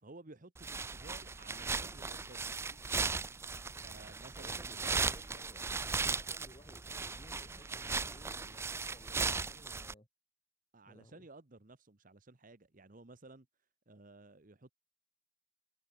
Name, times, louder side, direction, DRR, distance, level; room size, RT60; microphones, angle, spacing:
voice 1, 0.0-2.8 3.8-5.1 10.7-13.5 13.9-14.7, right 2 dB, 40° right, 1.1 m, -55 dB
sound 1, 0.6-9.9, right 4 dB, 10° right, 0.3 m, -37 dB
voice 2, 4.4-5.6 6.0-10.1 10.8-11.3, left 1 dB, 25° left, 7.3 m, -58 dB
head